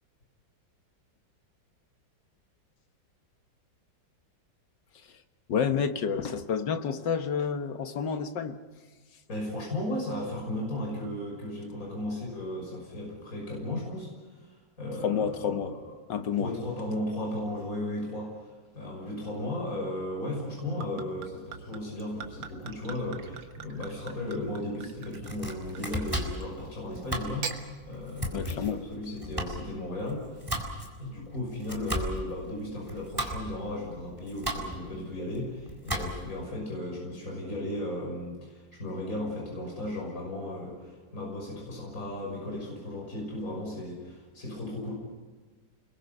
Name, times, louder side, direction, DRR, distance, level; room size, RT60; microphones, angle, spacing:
voice 1, 5.5-8.6 15.0-15.7 16.1-16.5 28.3-28.8, left 7 dB, 70° left, 1.9 m, -29 dB
voice 2, 9.3-15.9 16.4-30.4 31.0-44.9, left 1 dB, 45° left, 6.6 m, -35 dB
Gurgling / Chink clink / Liquid, 20.4-26.6 27.2-27.6, right 6 dB, 80° right, 2.2 m, -43 dB
Domestic sounds home sounds, 25.1-36.4, equal, 10° right, 4.0 m, -36 dB
30.0 x 22.0 x 5.6 m
omnidirectional pair, 2.0 m